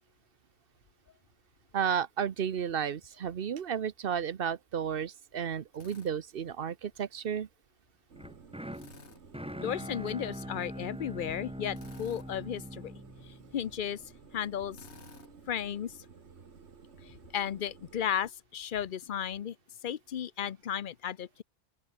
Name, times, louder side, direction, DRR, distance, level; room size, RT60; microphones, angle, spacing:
voice 1, 1.7-7.5, right 8 dB, 60° right, 1.0 m, -32 dB
Drill, 5.7-6.1 8.7-9.2 11.7-12.3 14.7-15.3, left 5 dB, 85° left, 2.2 m, -53 dB
sound 1, 8.1-18.3, right 5 dB, 80° right, 1.9 m, -55 dB
sound 2, 8.2-14.3, equal, 5° right, 2.4 m, -43 dB
voice 2, 9.6-12.9 13.2-14.0 14.3-14.8 15.5-16.0 17.0-19.6 19.8-21.4, left 9 dB, 55° left, 0.8 m, -34 dB
open air
omnidirectional pair, 1.1 m